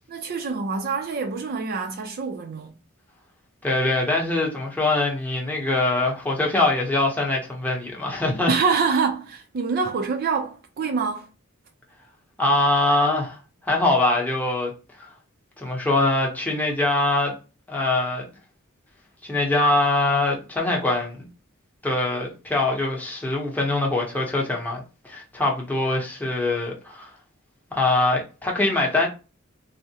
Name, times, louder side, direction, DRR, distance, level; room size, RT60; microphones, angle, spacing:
voice 1, 0.1-2.7 8.5-11.3, right 5 dB, 45° right, 0.4 m, -25 dB
voice 2, 3.6-8.5 12.4-13.4 13.7-14.7 15.0-15.1 15.6-17.3 17.7-18.3 19.2-21.3 21.8-27.1 27.7-29.1, left 2 dB, 10° left, 0.7 m, -23 dB
3.5 x 2.0 x 2.7 m
head